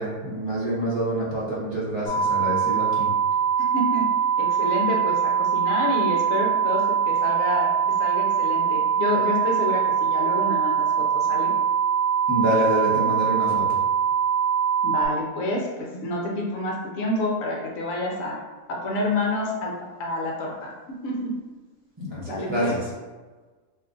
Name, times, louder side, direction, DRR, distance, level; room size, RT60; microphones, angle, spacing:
voice 1, 0.0-3.1 12.3-13.8 22.0-22.8, right 1 dB, 25° right, -6 dB, 0.7 m, -26 dB
sound 1, 2.1-15.1, right 7 dB, 45° left, 1.3 m, -23 dB
voice 2, 3.7-4.1 4.4-7.7 8.0-11.6 14.8-18.4 18.7-19.7 20.0-21.3 22.3-22.7, left 1 dB, 70° left, -1 dB, 1.0 m, -28 dB
2.6 x 2.4 x 3.7 m, 1.3 s
omnidirectional pair, 1.5 m